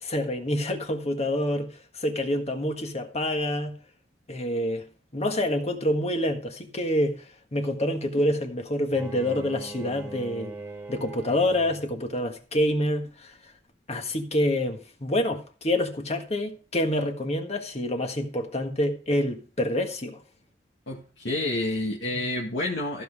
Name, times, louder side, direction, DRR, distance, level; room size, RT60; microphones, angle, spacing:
voice 1, 0.0-3.7 4.3-4.9 5.1-7.2 7.5-10.5 10.9-13.3 13.9-20.2, left 1 dB, 35° left, 1.6 m, -27 dB
Bowed string instrument, 8.9-12.1, right 2 dB, 10° right, 2.0 m, -40 dB
voice 2, 20.9-23.0, left 2 dB, 70° left, 2.0 m, -29 dB
14.5 x 5.7 x 4.8 m
head